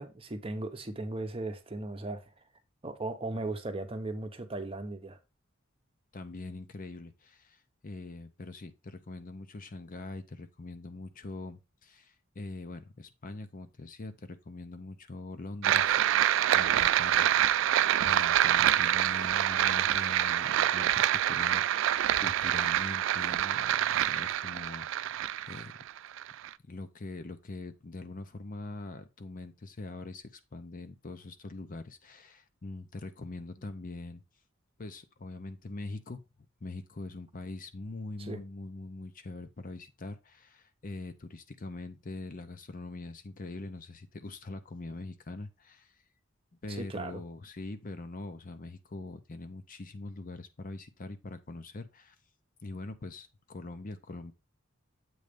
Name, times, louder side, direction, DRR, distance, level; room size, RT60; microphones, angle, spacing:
voice 1, 0.0-2.2 2.8-5.2 38.2-38.4 46.7-47.2, right 2 dB, 30° right, 0.9 m, -37 dB
voice 2, 6.1-16.0 16.5-17.6 18.0-25.7 26.7-34.2 34.8-36.2 36.6-45.9 46.6-52.1 52.6-54.3, left 2 dB, 45° left, 0.7 m, -43 dB
sound 1, 15.6-26.5, right 11 dB, 65° right, 0.3 m, -26 dB
7.8 x 3.2 x 5.1 m
head